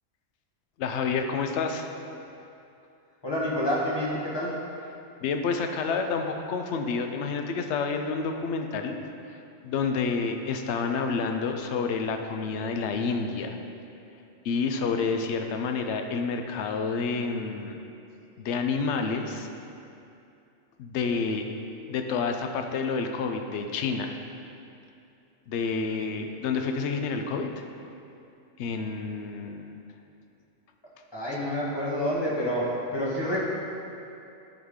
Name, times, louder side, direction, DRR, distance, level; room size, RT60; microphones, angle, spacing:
voice 1, 0.8-1.9 5.2-9.0 9.6-13.6 14.4-17.8 18.4-19.5 20.8-21.5 21.9-24.1 25.5-27.5 28.6-29.7, left 5 dB, 70° left, 5 dB, 0.9 m, -29 dB
voice 2, 3.2-4.7 31.1-33.4, equal, 20° left, -6 dB, 1.4 m, -28 dB
11.5 x 3.9 x 3.7 m, 2.7 s
omnidirectional pair, 1.3 m